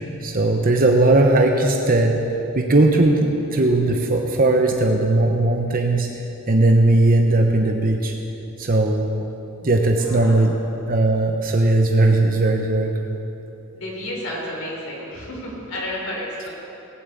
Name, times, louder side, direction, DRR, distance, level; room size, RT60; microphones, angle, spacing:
voice 1, 0.2-2.2 2.5-6.1 6.5-8.1 8.6-9.2 9.6-10.6 10.9-12.9, right 2 dB, 40° right, 2 dB, 0.9 m, -18 dB
voice 2, 10.0-10.6 13.7-16.5, left 1 dB, 75° left, -3 dB, 4.2 m, -31 dB
18.5 x 7.7 x 8.4 m, 3.0 s
head